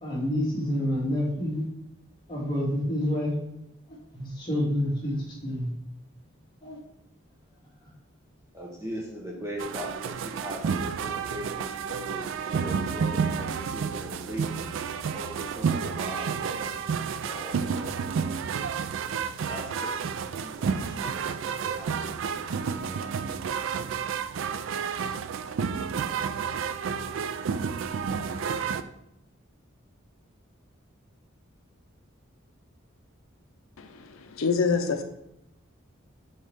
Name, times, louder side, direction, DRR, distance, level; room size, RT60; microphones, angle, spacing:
voice 1, 0.0-1.6 2.3-3.3 4.1-5.7 6.6-6.8, left 1 dB, 25° left, -6 dB, 2.0 m, -28 dB
voice 2, 8.5-16.7 17.2-17.9 19.4-20.1 20.4-22.2 22.7-23.1, equal, 15° right, -2 dB, 1.1 m, -40 dB
sound 1, 9.6-28.8, right 6 dB, 70° right, 0.3 m, -30 dB
voice 3, 34.4-35.0, left 5 dB, 90° left, 7 dB, 0.6 m, -24 dB
6.3 x 4.3 x 3.5 m, 0.83 s
head